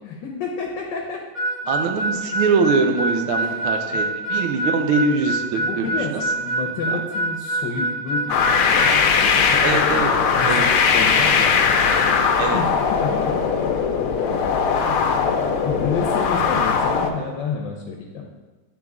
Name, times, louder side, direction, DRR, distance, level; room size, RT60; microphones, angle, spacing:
voice 1, 0.0-1.2 3.4-4.0 5.6-12.2 12.5-13.4 15.6-18.3, left 5 dB, 70° left, 1 dB, 1.3 m, -30 dB
Harmonica, 1.3-8.9, right 1 dB, 30° right, 0.9 m, -25 dB
voice 2, 1.7-6.2 6.9-7.0 9.6-10.1 10.4-10.7 12.4-12.6, right 4 dB, 85° right, 5 dB, 1.6 m, -23 dB
sound 1, 8.3-17.1, left 6 dB, 90° left, 1.5 m, -19 dB
10.0 x 3.9 x 3.6 m, 1.2 s
omnidirectional pair, 2.3 m